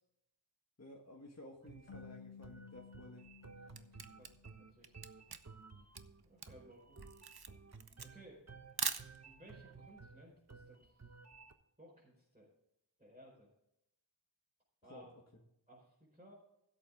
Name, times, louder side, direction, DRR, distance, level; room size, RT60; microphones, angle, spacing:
voice 1, 0.8-3.4 14.8-15.4, left 1 dB, 35° left, 0 dB, 1.7 m, -55 dB
sound 1, 1.6-11.5, right 4 dB, 35° right, 1.1 m, -56 dB
sound 2, 1.9-5.0, left 7 dB, 75° left, 0.7 m, -56 dB
Camera, 3.3-9.5, right 5 dB, 55° right, 0.9 m, -44 dB
voice 2, 3.5-5.4 5.8-5.9 6.2-7.2 8.0-8.4 9.2-11.1 11.8-12.5 13.0-13.5 14.8-15.1 15.7-16.3, right 1 dB, 15° right, -7 dB, 4.8 m, -60 dB
16.0 x 8.0 x 3.7 m, 0.80 s
wide cardioid pair, 50°, 45 cm